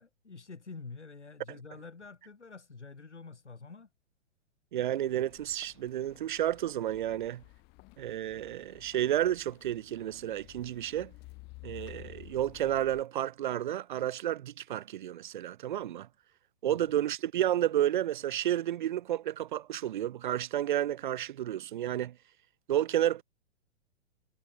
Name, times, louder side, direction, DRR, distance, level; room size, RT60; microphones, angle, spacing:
voice 1, 0.0-3.9 16.6-16.8, left 4 dB, 75° left, 5.3 m, -47 dB
voice 2, 4.7-7.4 8.0-11.1 11.6-16.1 16.6-22.1 22.7-23.2, right 12 dB, 45° right, 0.6 m, -31 dB
sound 1, 5.1-13.0, left 26 dB, 30° left, 2.7 m, -53 dB
figure-of-eight pair, 110°, 35 cm